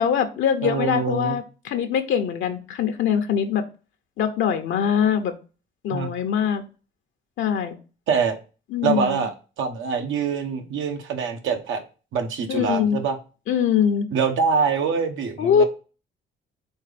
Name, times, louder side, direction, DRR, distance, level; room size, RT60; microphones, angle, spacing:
voice 1, 0.0-3.6 4.2-5.3 5.8-6.6 7.4-7.7 8.7-9.3 12.5-13.0 13.5-14.1 15.4-15.6, left 8 dB, 75° left, 6 dB, 0.8 m, -22 dB
voice 2, 0.6-1.4 5.9-6.1 8.1-8.4 8.8-11.8 12.1-13.2 14.1-15.6, right 6 dB, 80° right, 5 dB, 1.2 m, -24 dB
4.5 x 4.1 x 5.1 m, 0.34 s
cardioid pair, 90°, 20 cm